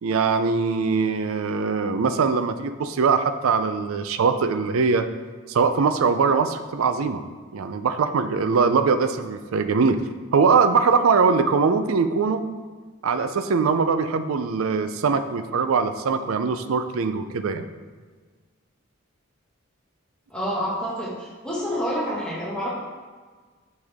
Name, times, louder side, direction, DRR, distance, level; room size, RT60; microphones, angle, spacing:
voice 1, 0.0-5.1 5.5-7.2 7.5-10.0 10.3-12.4 13.0-17.6, right 5 dB, 85° right, 10 dB, 0.4 m, -22 dB
voice 2, 20.3-22.7, equal, 5° left, -7 dB, 1.5 m, -28 dB
6.4 x 5.5 x 3.5 m, 1.5 s
head